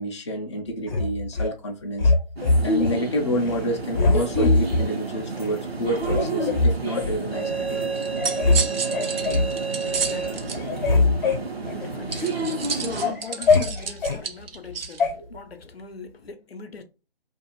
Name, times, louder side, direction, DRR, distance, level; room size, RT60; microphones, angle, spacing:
voice 1, 0.0-2.1 2.6-8.0, equal, 30° left, 0.4 m, -29 dB
sound 1, 0.9-1.5 2.0-3.0 3.4-3.6 3.9-4.9 5.4-5.5 6.0-7.2 7.8-7.9 8.2-8.6 8.9-9.5 10.0-10.3 10.5-12.3 12.7-14.2 15.0-15.1, left 3 dB, 50° left, 0.8 m, -22 dB
sound 2, 2.4-13.1, right 2 dB, 90° right, 1.0 m, -29 dB
sound 3, 8.0-10.6 12.1-15.0, right 6 dB, 70° right, 0.5 m, -31 dB
voice 2, 9.6-11.1 11.7-12.4 12.7-16.8, left 5 dB, 80° left, 0.6 m, -41 dB
2.5 x 2.3 x 2.9 m
figure-of-eight pair, 150°, 30 cm